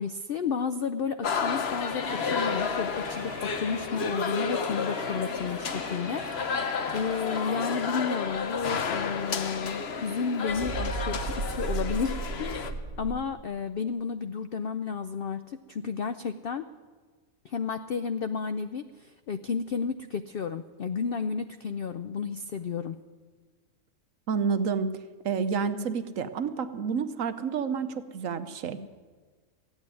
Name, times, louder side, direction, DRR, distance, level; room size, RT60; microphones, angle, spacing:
voice 1, 0.0-16.6 17.4-23.0, left 5 dB, 80° left, 10 dB, 0.5 m, -32 dB
sound 1, 1.2-12.7, left 5 dB, 50° left, 1.0 m, -31 dB
sound 2, 1.7-10.2 10.5-13.3, right 3 dB, 35° right, 1.5 m, -39 dB
voice 2, 24.3-24.9 25.2-28.8, right 6 dB, 65° right, 10 dB, 1.1 m, -29 dB
14.5 x 9.0 x 9.6 m, 1.4 s
omnidirectional pair, 1.6 m